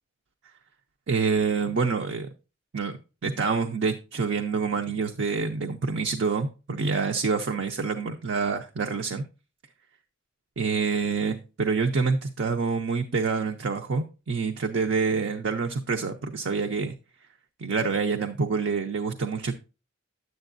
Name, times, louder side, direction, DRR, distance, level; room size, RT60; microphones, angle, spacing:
voice 1, 1.1-2.3 2.7-9.2 10.6-17.0 17.6-19.5, right 4 dB, 65° right, 5 dB, 0.6 m, -27 dB
9.8 x 8.0 x 2.5 m, 0.32 s
head